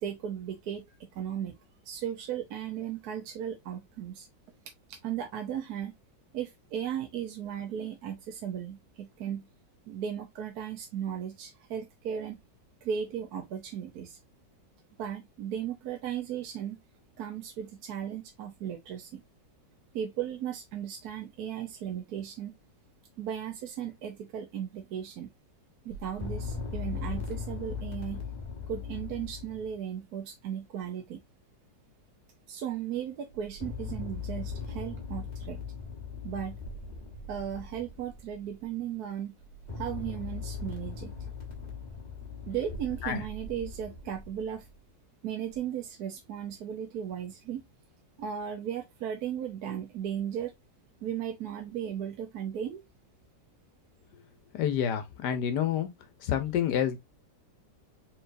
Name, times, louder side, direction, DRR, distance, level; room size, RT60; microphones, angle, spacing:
voice 1, 0.0-1.6 1.8-4.3 5.0-5.9 6.3-9.5 9.9-12.4 12.8-14.2 15.0-16.8 17.2-19.2 19.9-22.5 23.2-25.3 25.8-28.2 28.7-31.2 32.5-35.6 36.2-36.6 37.3-39.3 39.8-41.1 42.5-44.7 45.2-47.6 48.2-50.5 51.0-52.8, right 9 dB, 65° right, 1.1 m, -36 dB
sound 1, 25.9-29.8 33.3-38.7 39.4-44.8 45.5-45.6, left 4 dB, 30° left, 1.0 m, -39 dB
voice 2, 54.5-55.9 56.2-57.0, left 9 dB, 75° left, 1.3 m, -28 dB
4.4 x 3.9 x 2.5 m
omnidirectional pair, 1.9 m